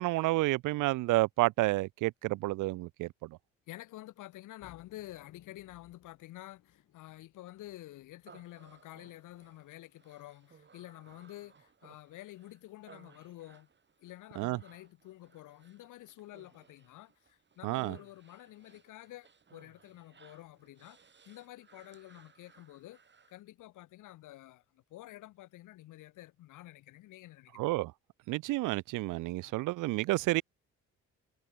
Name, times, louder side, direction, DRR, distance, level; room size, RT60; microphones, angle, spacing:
voice 1, 0.0-3.3 14.4-14.6 17.6-18.0 27.6-27.9 28.3-30.4, right 19 dB, 85° right, 0.6 m, -30 dB
voice 2, 3.7-13.7 14.0-21.0 21.2-23.0 23.3-27.6 29.4-29.5, left 16 dB, 90° left, 3.0 m, -50 dB
sound 1, 4.6-9.7, left 12 dB, 75° left, 7.2 m, -64 dB
Human voice, 8.2-23.4, right 5 dB, 40° right, 4.8 m, -61 dB
cardioid pair, 90°, 30 cm